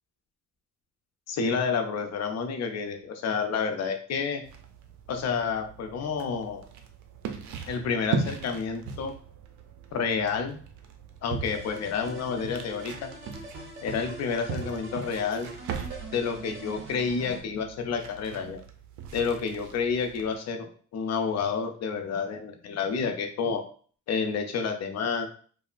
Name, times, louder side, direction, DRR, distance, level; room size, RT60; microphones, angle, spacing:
voice 1, 1.3-4.4 5.1-6.6 7.7-9.1 9.9-10.6 11.2-13.1 13.8-15.5 16.1-18.6 19.1-23.6 24.1-25.3, left 5 dB, 60° left, 6 dB, 0.5 m, -29 dB
sound 1, 4.4-20.4, right 5 dB, 70° right, 0.5 m, -39 dB
sound 2, 11.4-17.4, right 2 dB, 40° right, 1.0 m, -43 dB
3.0 x 2.0 x 2.4 m, 0.43 s
cardioid pair, 90°, 30 cm